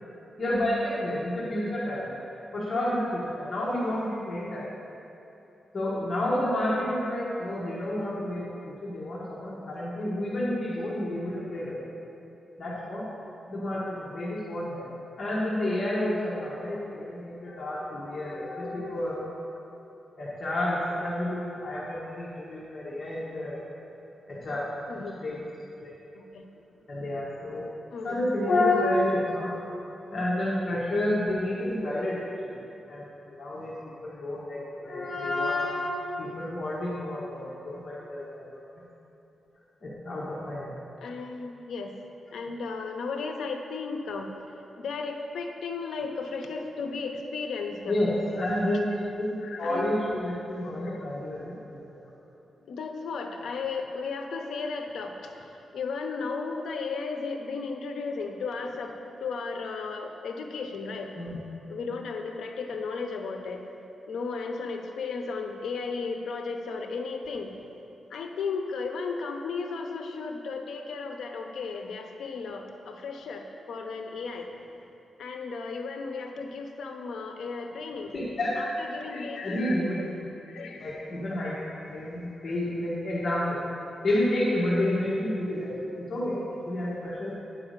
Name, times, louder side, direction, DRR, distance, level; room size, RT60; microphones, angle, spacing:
voice 1, 0.4-2.1 2.5-4.6 5.7-8.4 8.8-11.8 12.6-13.0 13.5-14.8 15.2-19.5 20.2-23.6 24.3-24.6 25.2-25.4 25.8-25.9 26.9-27.6 28.0-29.5 30.1-32.2 32.9-33.0 33.3-33.7 34.0-38.6 39.8-40.7 47.9-48.8 49.2-51.6 61.2-61.4 78.1-78.7 79.4-80.0 80.8-83.6 84.0-87.3, left 1 dB, 40° left, -7 dB, 1.3 m, -29 dB
voice 2, 24.9-25.2 26.1-26.4 27.9-28.2 41.0-41.9 42.3-44.3 44.8-47.9 49.4-49.9 50.8-50.9 52.7-58.9 59.2-61.1 61.7-63.6 64.1-67.5 68.1-74.5 75.2-78.1 78.6-79.8 80.5-81.1 82.5-82.6, left 4 dB, 85° left, 3 dB, 0.8 m, -35 dB
9.1 x 4.8 x 6.6 m, 2.9 s
wide cardioid pair, 165°, 0 cm